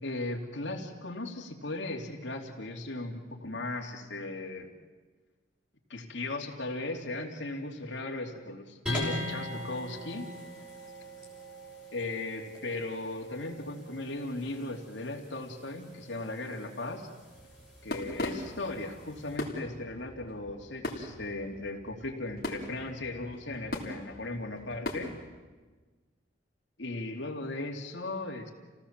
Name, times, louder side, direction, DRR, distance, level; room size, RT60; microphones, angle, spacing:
voice 1, 0.0-4.7 5.9-10.3 11.9-17.1 17.8-25.1 26.8-28.5, left 2 dB, 70° left, 1 dB, 2.9 m, -37 dB
sound 1, 8.9-19.4, left 1 dB, 5° right, 5.8 m, -42 dB
sound 2, 17.2-25.3, left 1 dB, 50° left, 3.2 m, -40 dB
29.0 x 18.0 x 7.5 m, 1.3 s
head